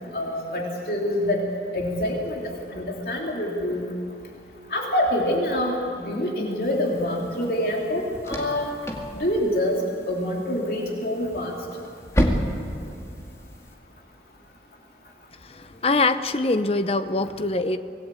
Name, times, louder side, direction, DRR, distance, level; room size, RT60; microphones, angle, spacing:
voice 1, 0.1-1.4 1.7-3.9 4.7-8.7 9.2-9.8 10.1-11.6, left 1 dB, 55° left, -1 dB, 3.2 m, -26 dB
sound 1, 6.6-13.7, equal, 15° left, 2.1 m, -31 dB
voice 2, 15.4-17.8, left 3 dB, 35° left, 11 dB, 0.8 m, -23 dB
25.5 x 18.5 x 8.4 m, 2.6 s
head